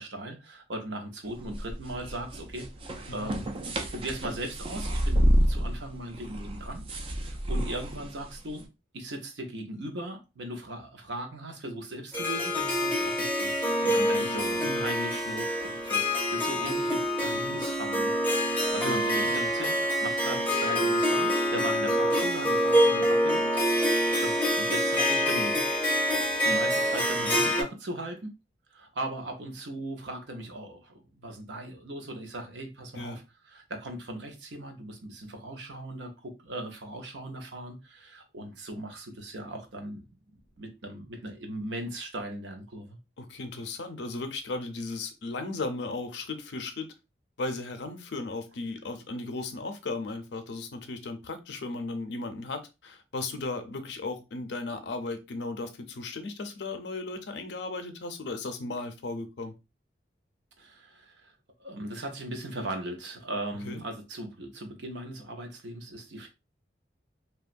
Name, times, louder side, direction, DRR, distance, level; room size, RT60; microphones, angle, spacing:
voice 1, 0.0-2.7 3.1-3.5 3.9-6.8 7.2-8.7 8.9-18.1 18.7-23.5 24.1-25.6 26.4-28.3 28.7-33.2 33.5-40.1 40.6-43.0 60.6-61.3 61.6-66.3, right 1 dB, 80° right, 0.7 m, -38 dB
sound 1, 1.3-8.6, equal, 30° right, 0.3 m, -29 dB
Harp, 12.1-27.6, equal, 10° left, 0.6 m, -26 dB
voice 2, 14.2-14.7 17.4-17.6 18.8-19.5 27.2-27.5 32.9-33.2 43.2-46.9 47.4-59.5 63.6-63.8, left 3 dB, 75° left, 0.5 m, -36 dB
2.9 x 2.2 x 2.5 m
head